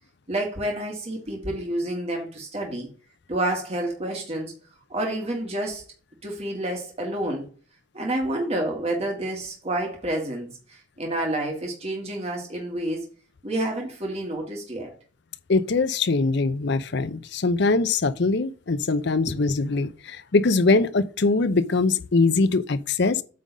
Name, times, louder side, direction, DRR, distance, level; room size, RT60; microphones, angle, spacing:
voice 1, 0.3-2.9 3.3-4.6 4.9-5.8 6.2-7.5 7.9-13.1 13.4-14.9, right 1 dB, 35° right, 2.0 m, -29 dB
voice 2, 15.5-23.2, left 3 dB, 60° left, 0.6 m, -22 dB
8.6 x 3.8 x 5.3 m
head